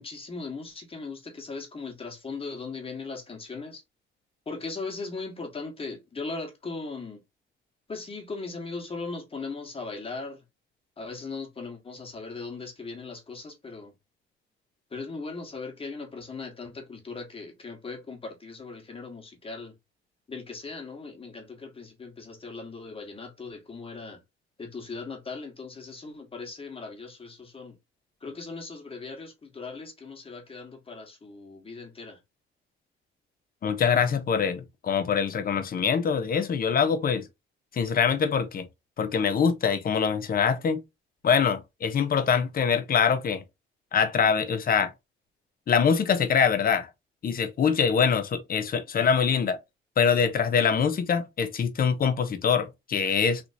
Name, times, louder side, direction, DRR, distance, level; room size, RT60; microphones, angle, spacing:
voice 1, 0.0-3.8 4.5-7.2 7.9-10.4 11.0-13.9 14.9-19.7 20.3-24.2 24.6-27.7 28.2-32.2, left 4 dB, 30° left, 1.3 m, -38 dB
voice 2, 33.6-37.3 37.7-38.7 39.0-40.8 41.2-43.4 43.9-44.9 45.7-46.9 47.2-49.6 50.0-53.4, left 6 dB, 50° left, 0.8 m, -24 dB
3.3 x 2.8 x 2.6 m
cardioid pair, 90°, 20 cm